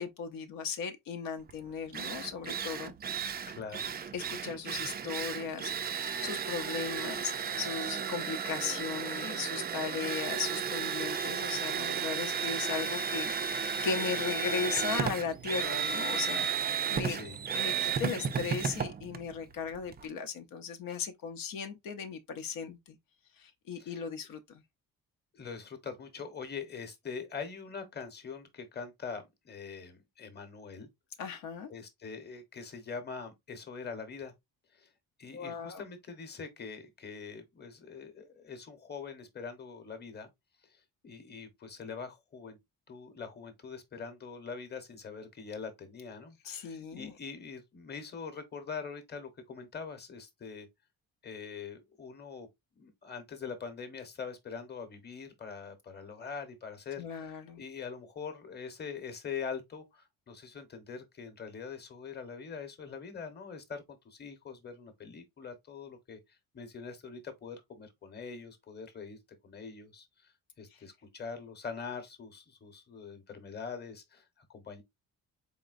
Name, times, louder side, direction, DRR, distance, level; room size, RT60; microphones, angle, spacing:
voice 1, 0.0-2.9 4.1-17.2 17.5-22.9 23.4-24.6 31.2-31.7 35.3-35.8 46.4-47.1 57.0-57.6 70.7-70.8, left 6 dB, 70° left, 0.7 m, -37 dB
Drill, 1.5-1.6 1.9-20.1, right 6 dB, 30° right, 0.4 m, -34 dB
voice 2, 3.5-3.9 17.0-17.4 23.8-24.0 25.3-30.9 31.7-34.3 34.7-34.9 35.2-40.3 40.7-42.6 42.9-50.7 51.2-52.5 52.8-70.3 70.6-74.8, left 5 dB, 30° left, 1.0 m, -43 dB
4.1 x 3.6 x 2.4 m
cardioid pair, 130°, 35 cm